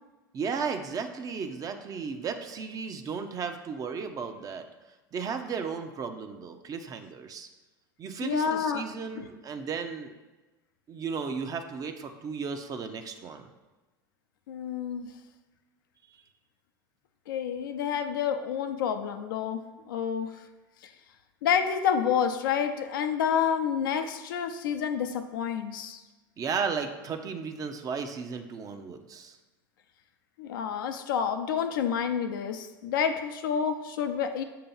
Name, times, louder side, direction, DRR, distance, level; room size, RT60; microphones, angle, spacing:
voice 1, 0.3-4.7 5.1-7.5 8.0-10.1 10.9-13.5 16.1-16.2 26.4-29.4, right 5 dB, 30° right, 6 dB, 0.6 m, -34 dB
voice 2, 8.2-8.8 9.2-9.3 14.5-15.1 17.3-20.3 20.8-20.9 21.4-26.0 30.4-34.4, left 7 dB, 75° left, 7 dB, 0.5 m, -29 dB
6.8 x 2.9 x 5.4 m, 1.2 s
hypercardioid pair, 90°, 11 cm